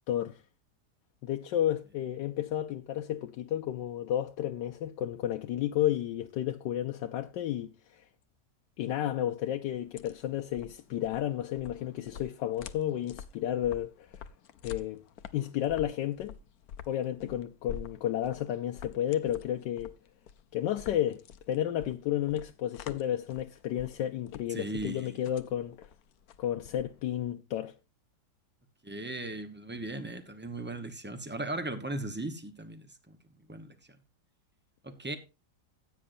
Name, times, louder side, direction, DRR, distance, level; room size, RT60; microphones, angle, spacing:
voice 1, 0.1-0.4 1.2-8.0 8.8-14.1 14.6-15.0 15.3-16.3 16.9-19.9 20.5-25.9 26.4-27.7, left 11 dB, 85° left, 1.3 m, -32 dB
sound 1, 9.7-27.2, left 7 dB, 65° left, 1.1 m, -48 dB
voice 2, 24.5-25.2 28.8-33.2 33.5-33.7 34.8-35.2, right 2 dB, 10° right, 0.8 m, -37 dB
15.0 x 8.6 x 2.6 m
omnidirectional pair, 1.9 m